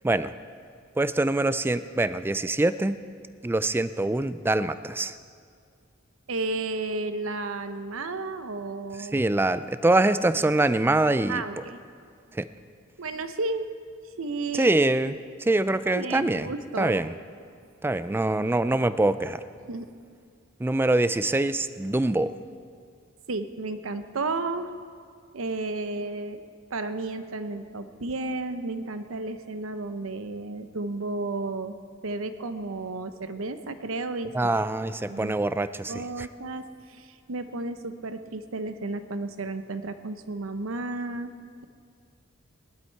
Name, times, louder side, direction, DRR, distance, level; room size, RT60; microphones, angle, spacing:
voice 1, 1.0-3.0 3.4-5.2 8.9-11.4 12.3-12.5 14.5-16.5 16.8-17.1 17.8-19.4 20.6-22.4 34.3-36.3, right 2 dB, 10° right, 13 dB, 0.3 m, -24 dB
voice 2, 6.3-9.2 11.3-11.8 13.0-13.7 14.2-15.0 15.9-17.0 19.7-19.9 23.3-24.7 25.3-26.4 26.7-31.8 32.0-34.3 35.1-35.4 35.9-41.3, right 3 dB, 85° right, 10 dB, 0.8 m, -32 dB
18.0 x 11.5 x 4.6 m, 2.2 s
head